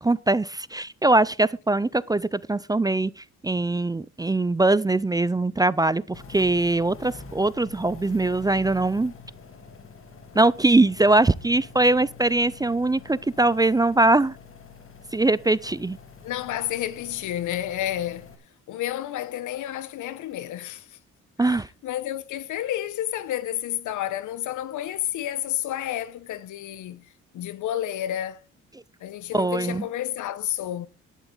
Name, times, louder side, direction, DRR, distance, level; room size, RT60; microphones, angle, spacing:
voice 1, 0.0-9.1 10.3-14.3 15.1-16.0 21.4-21.7 29.3-29.8, right 2 dB, 15° right, 0.4 m, -22 dB
sound 1, 6.1-18.4, left 5 dB, 45° left, 2.4 m, -46 dB
voice 2, 16.2-18.3 18.7-21.0 21.4-28.4 29.0-30.9, left 12 dB, 80° left, 1.0 m, -30 dB
11.5 x 11.0 x 3.9 m
cardioid pair, 90°, 30 cm